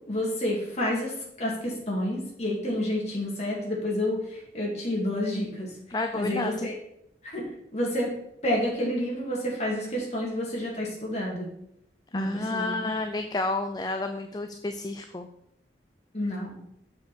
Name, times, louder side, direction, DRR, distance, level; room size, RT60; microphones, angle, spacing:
voice 1, 0.1-5.7 6.1-6.7 7.2-8.1 8.4-11.5 12.1-12.9 16.1-16.6, left 1 dB, 40° left, -3 dB, 2.6 m, -29 dB
voice 2, 5.9-6.7 12.1-15.3, left 2 dB, 25° left, 6 dB, 0.5 m, -30 dB
7.2 x 5.2 x 6.2 m, 0.76 s
head